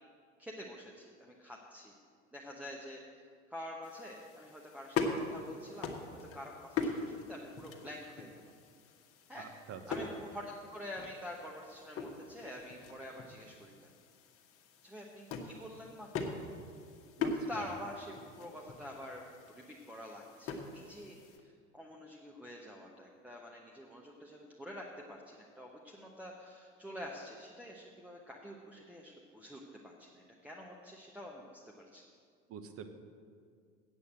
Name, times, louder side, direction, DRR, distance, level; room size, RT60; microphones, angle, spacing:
voice 1, 0.4-1.9 2.3-5.9 6.1-8.4 9.3-9.5 9.9-13.7 14.8-16.3 17.5-32.0, left 1 dB, 5° right, -3 dB, 1.0 m, -47 dB
sound 1, 3.8-21.4, left 4 dB, 35° left, 1.3 m, -42 dB
voice 2, 9.4-9.8 17.2-17.6 32.5-32.9, right 8 dB, 40° right, 8 dB, 1.0 m, -47 dB
8.2 x 7.9 x 7.6 m, 2.1 s
figure-of-eight pair, 75°, 36 cm